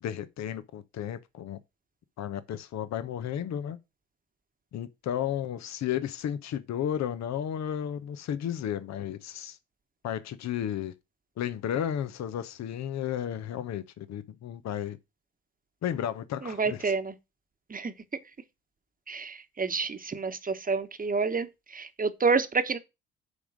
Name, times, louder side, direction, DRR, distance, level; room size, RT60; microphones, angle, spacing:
voice 1, 0.0-1.6 2.2-3.8 4.7-9.6 10.0-10.9 11.4-15.0 15.8-16.9, left 10 dB, 55° left, 1.0 m, -33 dB
voice 2, 16.4-17.1 17.7-17.9 19.1-22.8, right 4 dB, 25° right, 1.2 m, -29 dB
9.8 x 3.7 x 6.4 m
hypercardioid pair, 55°, 32 cm